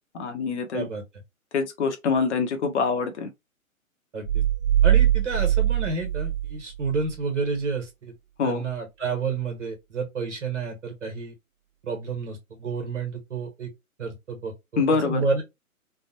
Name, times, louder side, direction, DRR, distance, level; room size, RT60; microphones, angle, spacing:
voice 1, 0.1-0.9 1.5-3.3 8.4-8.6 14.8-15.3, left 4 dB, 55° left, 1.0 m, -25 dB
voice 2, 0.7-1.0 4.1-4.4 4.8-8.1 8.4-11.3 11.8-13.7 14.0-15.4, right 4 dB, 55° right, 1.4 m, -30 dB
sound 1, 4.2-7.1, right 11 dB, 20° right, 1.2 m, -22 dB
3.3 x 2.1 x 2.8 m
figure-of-eight pair, 130°, 42 cm